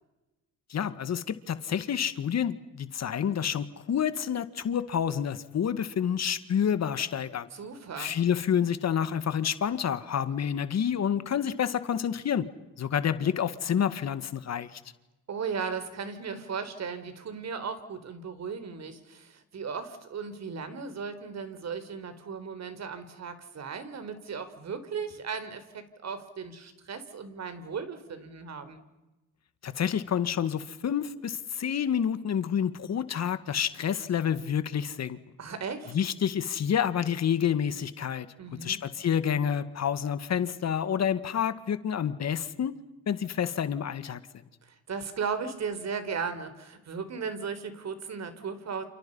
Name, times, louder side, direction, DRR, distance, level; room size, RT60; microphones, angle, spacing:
voice 1, 0.7-7.5 8.0-12.5 12.8-14.8 29.6-35.2 35.9-38.3 38.6-42.7 43.1-44.2, left 8 dB, 50° left, 12 dB, 1.9 m, -28 dB
voice 2, 7.5-8.1 15.3-28.8 35.4-36.0 38.4-38.8 44.6-48.8, right 5 dB, 50° right, 10 dB, 4.3 m, -36 dB
29.5 x 29.0 x 5.6 m, 1.0 s
supercardioid pair, 70°, 33 cm